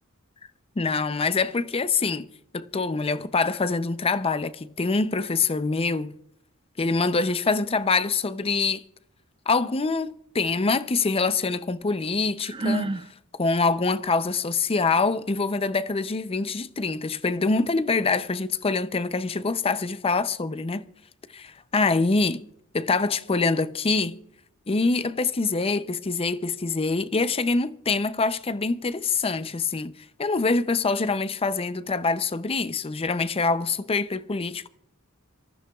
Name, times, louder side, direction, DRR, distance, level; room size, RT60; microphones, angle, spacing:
voice 1, 0.8-2.3 2.5-6.1 6.8-8.8 9.5-13.0 13.3-20.8 21.3-22.4 22.7-24.2 24.7-29.9 30.2-34.6, left 4 dB, 25° left, 0.5 m, -25 dB
Sigh, 12.4-13.1, right 2 dB, 25° right, 0.5 m, -27 dB
25.5 x 14.5 x 2.3 m
head